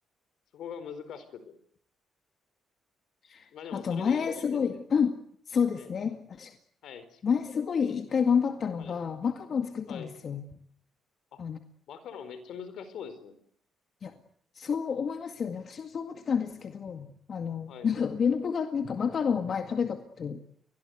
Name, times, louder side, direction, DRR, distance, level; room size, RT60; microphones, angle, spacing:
voice 1, 0.5-1.6 3.5-4.8 5.7-5.9 6.8-7.2 8.8-9.1 9.9-10.1 11.3-11.4 11.9-13.4 17.7-17.9, left 7 dB, 75° left, 12 dB, 4.4 m, -43 dB
voice 2, 3.2-5.2 5.5-6.5 7.2-10.5 11.4-11.6 14.0-14.1 14.5-20.4, left 6 dB, 50° left, 7 dB, 2.1 m, -29 dB
29.5 x 22.0 x 8.1 m, 0.63 s
cardioid pair, 90°, 0 cm